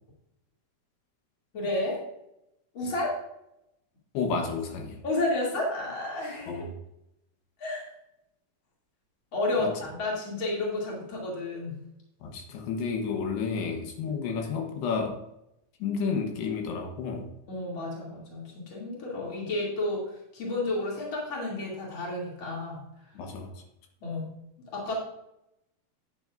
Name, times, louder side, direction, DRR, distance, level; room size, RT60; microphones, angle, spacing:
voice 1, 1.5-2.0 2.7-3.2 5.0-6.6 7.6-7.8 9.3-11.7 14.1-14.2 17.5-22.8 24.0-24.3 24.7-24.9, left 2 dB, 35° left, -4 dB, 2.9 m, -31 dB
voice 2, 4.1-5.0 6.5-6.7 9.6-9.7 12.2-15.2 15.8-17.3 23.2-23.5, left 5 dB, 80° left, 1 dB, 3.2 m, -31 dB
9.8 x 9.4 x 2.5 m, 0.83 s
omnidirectional pair, 4.7 m